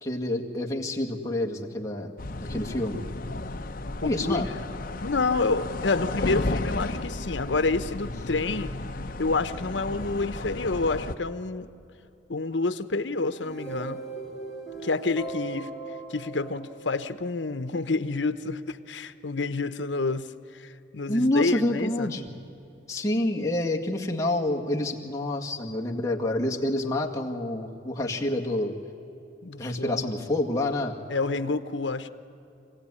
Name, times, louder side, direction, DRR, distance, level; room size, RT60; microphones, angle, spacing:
voice 1, 0.0-2.1 2.4-3.1 4.0-4.5 21.1-22.3 22.9-28.7 29.6-30.9, left 1 dB, 20° left, -1 dB, 1.9 m, -28 dB
sound 1, 2.2-11.1, left 2 dB, 50° left, 0.8 m, -33 dB
voice 2, 4.0-4.5 5.0-8.7 9.2-11.7 12.3-14.0 14.8-15.7 16.1-22.1 29.4-30.0 31.1-32.1, left 3 dB, 80° left, 11 dB, 1.0 m, -28 dB
sound 2, 13.2-17.5, right 3 dB, ahead, 2.9 m, -39 dB
25.5 x 17.5 x 9.8 m, 2.8 s
head